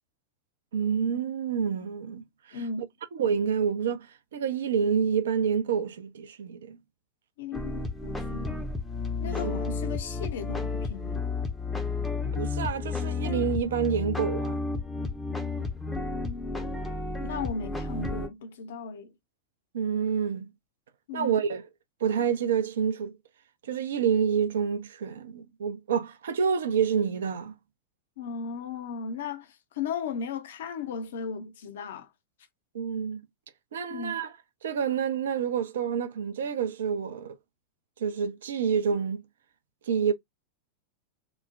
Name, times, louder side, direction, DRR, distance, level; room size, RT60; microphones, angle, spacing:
voice 1, 0.7-2.6 3.1-6.8 9.2-9.5 12.3-14.6 19.7-20.5 21.1-21.6 22.0-23.2 23.6-27.5 32.7-33.2 33.7-34.3 34.6-37.3 38.0-39.2 39.9-40.1, right 7 dB, 60° right, 0.5 m, -28 dB
voice 2, 2.5-2.9 7.4-8.7 9.2-11.3 15.9-16.6 17.2-19.1 21.1-21.4 28.2-32.1 33.9-34.2, left 5 dB, 60° left, 0.6 m, -36 dB
sound 1, 7.5-18.3, left 4 dB, 5° left, 0.6 m, -32 dB
3.0 x 2.0 x 2.4 m
figure-of-eight pair, 90°, 0 cm